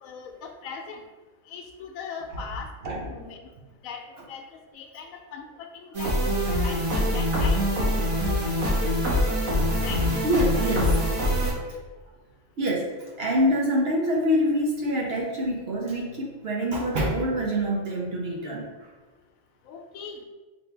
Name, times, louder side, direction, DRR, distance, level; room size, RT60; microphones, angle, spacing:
voice 1, 0.0-1.0 1.5-3.4 3.8-4.0 4.3-6.1 6.6-7.7 9.8-10.0 19.7-20.2, left 6 dB, 80° left, 4 dB, 1.0 m, -40 dB
voice 2, 2.8-3.2 9.4-9.6 10.2-11.8 12.6-18.7, equal, 55° right, -2 dB, 0.8 m, -26 dB
sound 1, 5.9-11.5, equal, 80° right, 1.6 m, -24 dB
4.3 x 2.6 x 3.3 m, 1.2 s
omnidirectional pair, 1.4 m